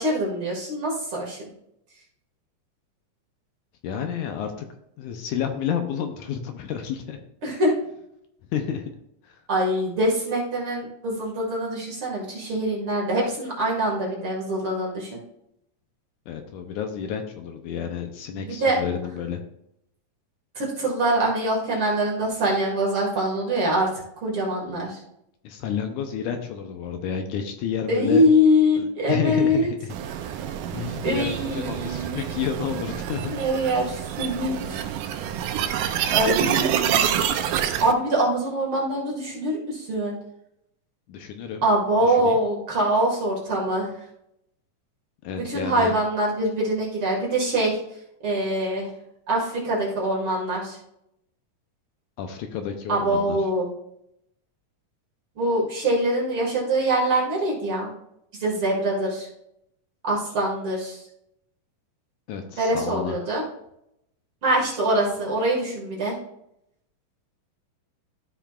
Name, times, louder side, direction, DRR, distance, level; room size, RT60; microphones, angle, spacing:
voice 1, 0.0-1.4 7.4-7.7 9.5-15.2 18.3-18.8 20.6-23.9 24.2-25.0 27.9-29.7 31.0-32.2 33.3-34.8 36.1-37.2 37.8-40.1 41.6-43.9 45.4-47.8 48.2-48.9 49.3-50.8 52.9-53.7 55.4-57.9 58.4-59.3 60.0-61.0 62.6-63.4 64.4-66.2, right 1 dB, 45° right, -3 dB, 2.4 m, -24 dB
voice 2, 3.8-4.7 5.0-7.2 8.5-8.9 9.2-9.4 16.3-19.4 25.4-28.2 28.8-30.0 30.2-33.3 41.1-41.6 42.0-42.4 45.2-45.9 52.2-53.4 62.3-63.2, left 8 dB, 80° left, 5 dB, 2.0 m, -30 dB
sound 1, 29.9-37.9, right 9 dB, 85° right, 2.2 m, -27 dB
13.0 x 5.8 x 2.4 m, 0.79 s
omnidirectional pair, 3.8 m